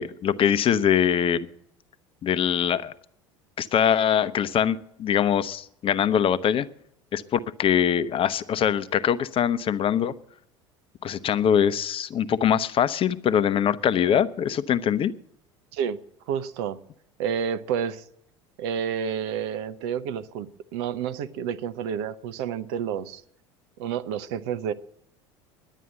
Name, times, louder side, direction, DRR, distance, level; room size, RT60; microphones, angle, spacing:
voice 1, 0.0-1.5 2.2-2.9 3.6-6.7 7.1-10.1 11.0-15.1, left 9 dB, 40° left, 15 dB, 0.7 m, -23 dB
voice 2, 16.3-16.8 17.2-18.0 18.6-23.2 23.8-24.7, right 8 dB, 65° right, 13 dB, 0.8 m, -29 dB
11.0 x 9.2 x 8.7 m, 0.71 s
hypercardioid pair, 70°, 15 cm